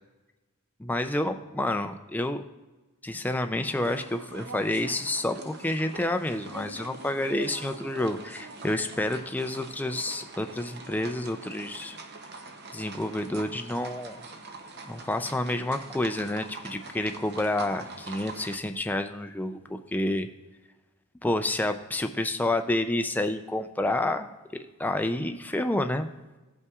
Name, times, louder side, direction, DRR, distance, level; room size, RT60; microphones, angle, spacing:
voice 1, 0.8-2.4 3.0-12.0 12.7-14.2 14.9-20.3 21.2-24.3 24.8-26.1, left 1 dB, 10° left, 7 dB, 0.4 m, -29 dB
sound 1, 3.6-18.6, right 3 dB, 50° right, 0.7 m, -44 dB
16.5 x 5.5 x 2.4 m, 1.2 s
head